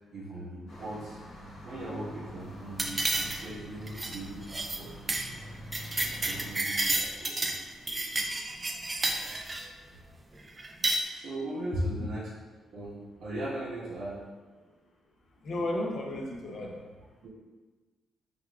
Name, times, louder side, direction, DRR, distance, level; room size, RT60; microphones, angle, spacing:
voice 1, 0.1-1.2 1.6-5.1 5.4-5.5 6.2-7.5 11.1-12.3 12.7-14.2 15.5-15.6 17.2-17.3, right 1 dB, 75° right, -8 dB, 1.4 m, -39 dB
sound 1, 0.7-6.5, equal, 75° left, 1.3 m, -46 dB
sound 2, 2.8-3.6 3.9-4.2 4.5-4.8 5.1-5.3 5.5-7.6 7.9-9.7 10.6-11.0, right 2 dB, 20° right, 0.3 m, -30 dB
voice 2, 15.4-16.8, left 1 dB, 55° left, 0 dB, 0.7 m, -33 dB
6.1 x 2.4 x 2.4 m, 1.3 s
cardioid pair, 125°, 0 cm